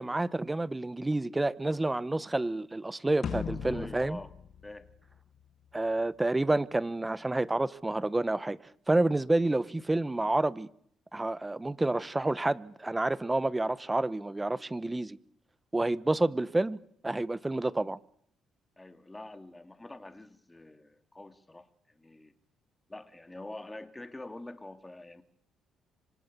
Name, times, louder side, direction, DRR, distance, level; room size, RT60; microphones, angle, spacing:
voice 1, 0.0-4.2 5.7-8.6 8.9-10.7 11.1-15.2 15.7-16.8 17.0-18.0, right 2 dB, 15° right, 1.1 m, -29 dB
sound 1, 3.2-5.7, left 7 dB, 55° left, 1.8 m, -38 dB
voice 2, 3.5-4.3 4.6-4.9 18.8-22.3 22.9-25.2, left 2 dB, 15° left, 2.6 m, -46 dB
26.5 x 25.5 x 7.0 m
cardioid pair, 80°, 0 cm